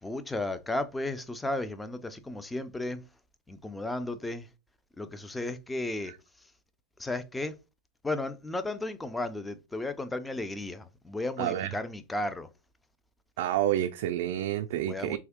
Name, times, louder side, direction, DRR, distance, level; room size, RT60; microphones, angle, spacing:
voice 1, 0.0-3.1 3.5-4.5 5.0-6.1 7.0-7.6 8.0-12.5 14.8-15.2, left 2 dB, 5° left, 0.4 m, -34 dB
voice 2, 11.4-11.7 13.4-15.2, right 12 dB, 65° right, 0.3 m, -29 dB
3.4 x 2.7 x 3.5 m
supercardioid pair, 140°, 0 cm